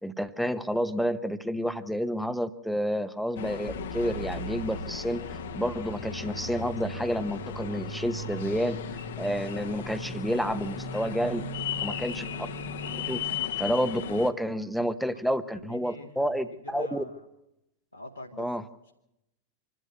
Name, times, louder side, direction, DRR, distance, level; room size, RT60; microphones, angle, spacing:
voice 1, 0.0-8.8 9.2-11.5 11.8-12.5 13.1-13.3 13.6-17.0 18.4-18.6, equal, ahead, 12 dB, 1.0 m, -30 dB
sound 1, 3.4-14.3, left 9 dB, 60° left, 1.3 m, -36 dB
sound 2, 3.7-13.4, right 7 dB, 25° right, 1.1 m, -42 dB
voice 2, 11.5-12.0 15.1-15.2 15.5-17.3 17.9-18.5 18.9-19.0, left 1 dB, 85° left, -2 dB, 1.9 m, -44 dB
26.0 x 12.5 x 7.8 m, 0.86 s
figure-of-eight pair, 90°, 0 cm